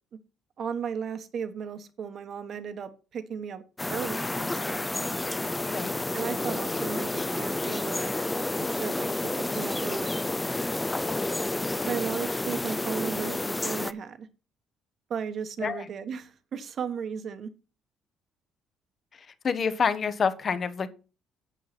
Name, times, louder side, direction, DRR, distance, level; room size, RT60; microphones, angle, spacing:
voice 1, 0.6-3.6 3.9-4.9 6.1-9.1 9.4-10.2 11.8-14.3 15.1-17.5, right 7 dB, 45° right, 1.2 m, -35 dB
sound 1, 3.8-13.9, left 2 dB, 10° left, 0.4 m, -30 dB
voice 2, 19.4-20.9, left 6 dB, 35° left, 1.0 m, -27 dB
9.2 x 7.2 x 4.2 m
cardioid pair, 145°, 0 cm